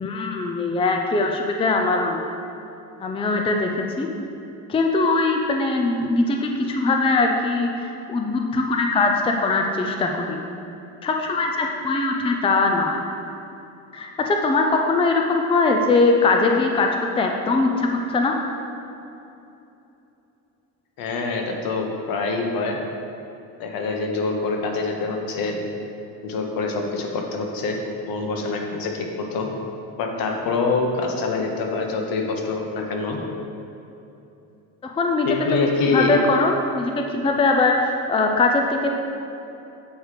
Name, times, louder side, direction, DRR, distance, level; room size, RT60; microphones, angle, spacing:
voice 1, 0.0-2.2 3.0-3.7 4.0-4.1 4.7-10.4 11.0-13.0 13.9-18.3 34.8-38.9, left 3 dB, 15° left, 2 dB, 0.5 m, -21 dB
voice 2, 21.0-22.8 23.6-25.6 26.2-27.8 28.1-29.5 30.0-33.2 35.2-36.1, left 3 dB, 65° left, 2 dB, 1.2 m, -25 dB
8.1 x 4.9 x 4.8 m, 2.9 s
cardioid pair, 130°, 37 cm